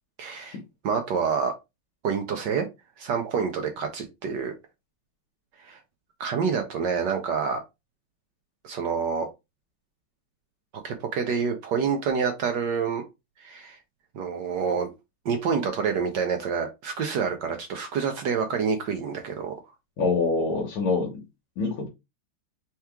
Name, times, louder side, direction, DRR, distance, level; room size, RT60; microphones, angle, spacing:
voice 1, 0.2-0.6 0.8-1.5 2.0-2.7 3.0-4.5 5.6-5.8 6.2-7.6 8.6-9.3 10.7-13.0 13.4-13.8 14.1-14.9 15.2-19.5, right 6 dB, 65° right, 5 dB, 1.2 m, -27 dB
voice 2, 20.0-21.1 21.6-21.9, left 4 dB, 90° left, 0 dB, 2.1 m, -25 dB
4.5 x 3.0 x 3.5 m, 0.23 s
omnidirectional pair, 2.3 m